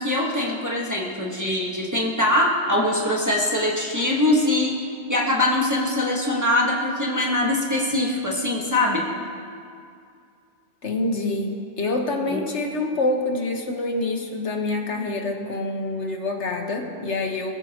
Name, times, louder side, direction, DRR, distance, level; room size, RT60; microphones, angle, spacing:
voice 1, 0.0-4.7 5.1-9.1 12.3-12.4, left 1 dB, 15° right, -4 dB, 1.6 m, -22 dB
voice 2, 10.8-17.5, left 2 dB, 90° left, 2 dB, 1.7 m, -26 dB
22.0 x 14.5 x 3.0 m, 2.3 s
omnidirectional pair, 1.1 m